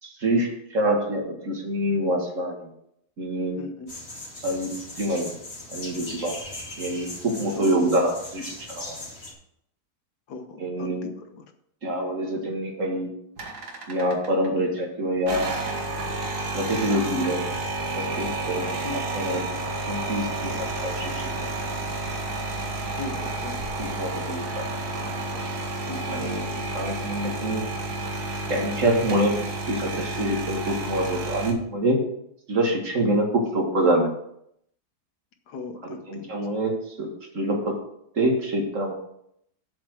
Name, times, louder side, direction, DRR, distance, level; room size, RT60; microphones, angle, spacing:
voice 1, 0.0-2.7 3.2-3.6 4.4-5.3 5.7-6.4 6.8-8.9 10.6-11.1 11.8-13.1 13.9-15.5 16.5-17.6 18.0-18.7 19.1-19.6 19.9-21.5 23.8-24.7 26.1-27.6 28.5-29.4 29.7-32.0 32.5-34.1 35.8-37.8 38.1-38.9, right 1 dB, 55° right, 1 dB, 2.2 m, -26 dB
voice 2, 3.6-3.9 7.6-7.9 10.3-11.4 18.8-19.0 23.0-23.8 25.9-26.2 35.5-36.2, left 3 dB, 85° left, 7 dB, 1.7 m, -38 dB
sound 1, 3.9-9.3, left 2 dB, 40° left, 2.6 m, -39 dB
sound 2, 13.4-14.5 15.2-31.5, right 2 dB, 80° right, 2.1 m, -31 dB
7.7 x 7.3 x 6.3 m, 0.74 s
omnidirectional pair, 1.7 m